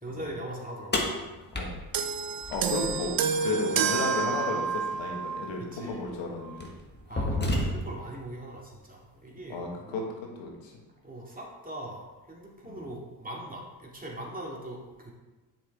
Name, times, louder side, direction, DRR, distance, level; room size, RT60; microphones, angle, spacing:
voice 1, 0.0-1.1 5.6-6.1 7.1-10.1 11.0-15.1, right 1 dB, 20° right, -3 dB, 2.4 m, -41 dB
sound 1, 0.9-3.1 5.0-5.1 5.9-6.1 6.6-8.1, left 1 dB, 20° left, 1.6 m, -31 dB
sound 2, 1.9-5.5 6.4-6.6, right 6 dB, 50° right, 0.7 m, -29 dB
voice 2, 2.5-6.7 9.5-10.0 10.4-10.7 12.7-12.9, left 3 dB, 75° left, 0 dB, 1.7 m, -33 dB
7.5 x 5.9 x 3.6 m, 1.2 s
supercardioid pair, 55°, 46 cm